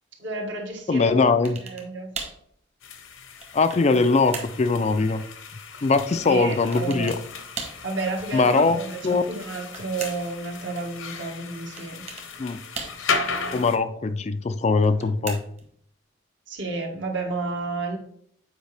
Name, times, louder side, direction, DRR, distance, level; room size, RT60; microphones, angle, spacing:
voice 1, 0.2-1.2 1.6-2.1 6.2-7.1 7.8-12.0 16.5-18.0, right 3 dB, 65° right, 1 dB, 1.6 m, -31 dB
voice 2, 0.9-1.6 3.5-5.2 5.8-7.1 8.3-8.8 9.0-9.2 12.4-12.6 13.5-15.4, left 4 dB, 35° left, 10 dB, 0.3 m, -21 dB
sound 1, 1.5-2.4 3.1-3.9 4.3-4.6 6.7-7.2 7.6-7.9 9.3-10.4 11.8-12.3 12.8-13.3 14.7-15.7, right 4 dB, 30° right, 1.2 m, -37 dB
sound 2, 2.8-13.8, left 4 dB, 80° left, 0.9 m, -35 dB
8.0 x 4.9 x 3.4 m, 0.65 s
head